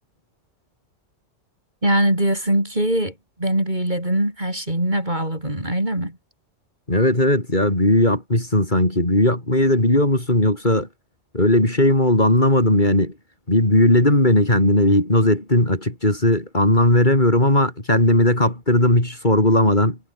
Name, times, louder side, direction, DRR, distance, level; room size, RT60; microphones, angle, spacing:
voice 1, 1.8-6.2, right 1 dB, 40° right, 8.3 m, -22 dB
voice 2, 6.9-10.9 11.3-13.1 13.5-20.0, left 1 dB, 40° left, 5.4 m, -17 dB
omnidirectional pair, 1.2 m